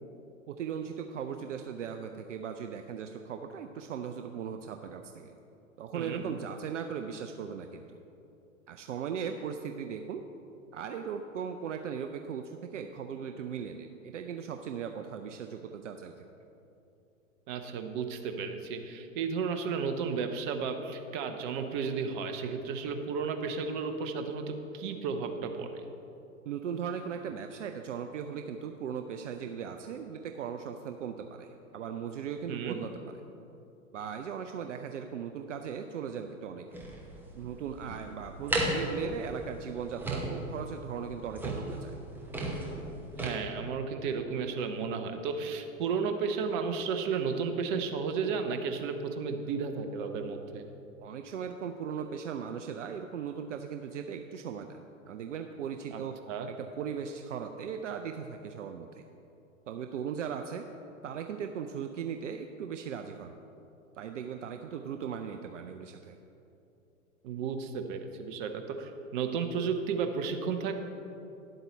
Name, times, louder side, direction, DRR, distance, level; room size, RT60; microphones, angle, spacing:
voice 1, 0.5-5.4 5.8-8.0 8.7-10.2 10.7-16.1 26.5-33.2 33.9-36.8 37.3-42.0 51.0-56.2 56.5-59.0 59.7-60.7 61.0-63.4 64.0-66.2, right 7 dB, 60° right, 6 dB, 0.6 m, -38 dB
voice 2, 17.5-25.7 32.5-32.8 43.2-50.6 55.9-56.0 56.3-56.5 67.2-70.7, right 5 dB, 35° right, 6 dB, 0.9 m, -33 dB
sound 1, 36.7-43.3, right 1 dB, 5° right, 0.9 m, -35 dB
10.5 x 7.9 x 4.0 m, 2.8 s
figure-of-eight pair, 105°, 41 cm